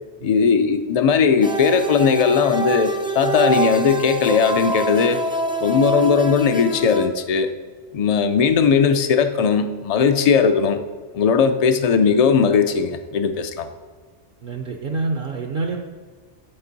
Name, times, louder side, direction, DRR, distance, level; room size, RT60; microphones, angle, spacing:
voice 1, 0.2-5.2 5.6-7.5 7.9-10.8 11.1-13.7, left 6 dB, 70° left, 9 dB, 0.3 m, -18 dB
sound 1, 1.4-7.1, right 3 dB, 10° right, 0.3 m, -25 dB
voice 2, 14.4-15.8, right 3 dB, 60° right, 3 dB, 0.7 m, -27 dB
10.0 x 4.4 x 4.0 m, 1.5 s
omnidirectional pair, 1.2 m